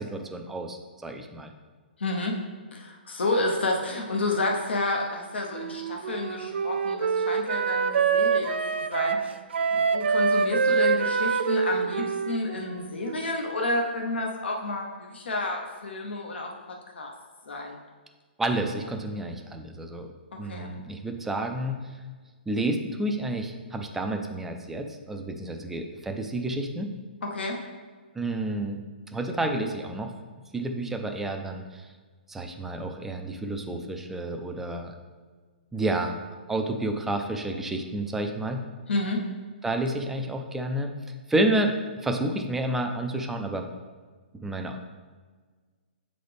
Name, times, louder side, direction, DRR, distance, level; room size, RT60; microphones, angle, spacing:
voice 1, 0.0-1.5 18.4-20.1 20.4-21.8 22.5-26.9 28.1-28.8 29.1-30.1 30.5-31.9 32.3-34.9 35.7-36.2 36.5-38.6 39.6-40.9 41.3-43.7 44.4-44.8, right 1 dB, 5° right, 4 dB, 0.4 m, -30 dB
voice 2, 2.0-2.4 2.7-9.2 9.7-16.5 17.0-17.1 17.5-17.8 20.4-20.7 27.3-27.6 38.9-39.2, left 2 dB, 85° left, 0 dB, 0.9 m, -30 dB
Wind instrument woodwind instrument, 5.5-13.5, right 5 dB, 85° right, 0.4 m, -26 dB
7.6 x 4.0 x 3.4 m, 1.5 s
hypercardioid pair, 155°, 6 cm